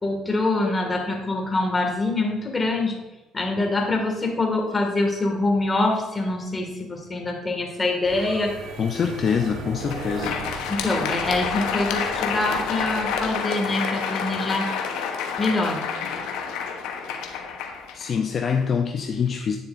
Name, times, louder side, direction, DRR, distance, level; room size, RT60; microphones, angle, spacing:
voice 1, 0.0-3.0 3.3-8.5 10.7-14.7 15.4-15.8, left 2 dB, 25° left, 2 dB, 2.0 m, -24 dB
sound 1, 8.0-13.2, right 3 dB, 85° right, 1.4 m, -37 dB
voice 2, 8.8-10.4 17.9-19.6, left 6 dB, 50° left, 4 dB, 0.5 m, -25 dB
Crowd, 9.7-18.6, left 6 dB, 80° left, 0.9 m, -29 dB
9.8 x 7.0 x 2.6 m, 1.1 s
supercardioid pair, 70°, 0 cm